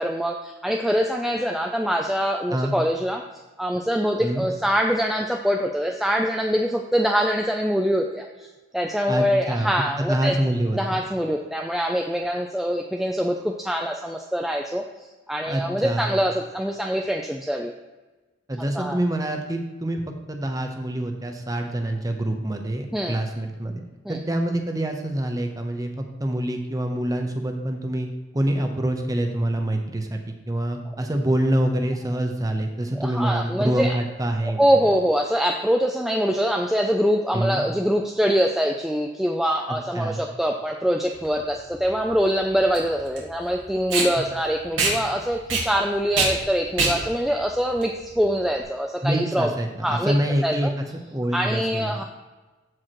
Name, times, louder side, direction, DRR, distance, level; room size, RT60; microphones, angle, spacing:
voice 1, 0.0-3.2 3.6-8.5 8.7-10.4 10.7-14.8 15.3-17.7 18.7-19.0 22.9-23.2 24.1-24.2 33.0-34.0 34.4-49.5 49.8-50.1 50.4-50.7 51.3-52.0, equal, ahead, 2 dB, 0.4 m, -24 dB
voice 2, 9.1-9.7 10.0-11.0 15.5-16.2 18.5-23.8 24.1-34.7 37.3-37.6 39.7-40.2 44.2-44.3 49.0-50.7 51.1-51.9, right 1 dB, 20° right, 4 dB, 0.8 m, -26 dB
Packing tape duct tape, 41.1-48.6, right 3 dB, 90° right, 2.1 m, -27 dB
13.5 x 4.8 x 3.0 m, 1.2 s
head